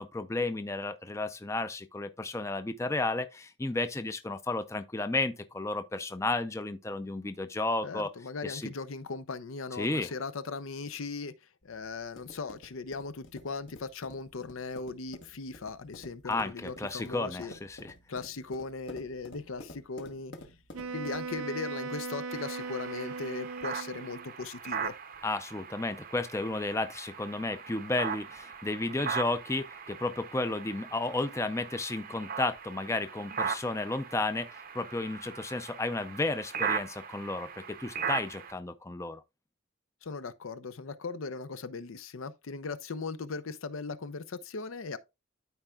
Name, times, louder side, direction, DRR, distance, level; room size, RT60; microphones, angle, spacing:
voice 1, 0.0-8.1 8.4-8.7 9.8-10.1 16.3-17.9 25.2-39.2, left 2 dB, 15° left, 0.4 m, -33 dB
voice 2, 7.8-11.3 11.6-17.5 18.1-20.3 20.9-24.9 40.0-45.0, left 4 dB, 80° left, 0.6 m, -38 dB
sound 1, 11.6-21.4, left 1 dB, 60° left, 1.1 m, -51 dB
Wind instrument woodwind instrument, 20.7-24.3, right 4 dB, 85° right, 0.6 m, -38 dB
sound 2, 22.3-38.5, right 6 dB, 45° right, 0.7 m, -39 dB
12.5 x 4.4 x 2.3 m
head